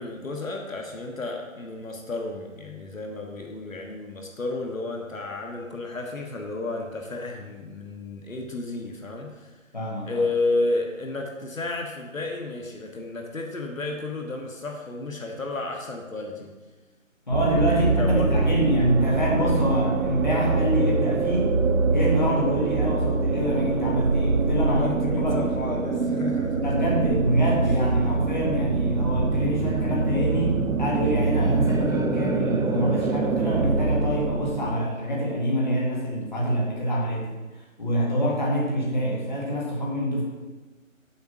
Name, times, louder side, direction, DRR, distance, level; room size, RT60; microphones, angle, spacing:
voice 1, 0.0-9.6 10.0-16.5 17.4-18.5 24.6-26.7, left 2 dB, 75° left, 1 dB, 1.6 m, -32 dB
voice 2, 9.7-10.2 17.3-21.6 21.9-24.8 25.1-25.4 26.6-37.3 37.8-40.2, equal, 35° left, -4 dB, 1.7 m, -26 dB
sound 1, 17.3-34.8, right 3 dB, 90° right, 0.9 m, -24 dB
7.0 x 6.4 x 5.4 m, 1.2 s
figure-of-eight pair, 180°, 40 cm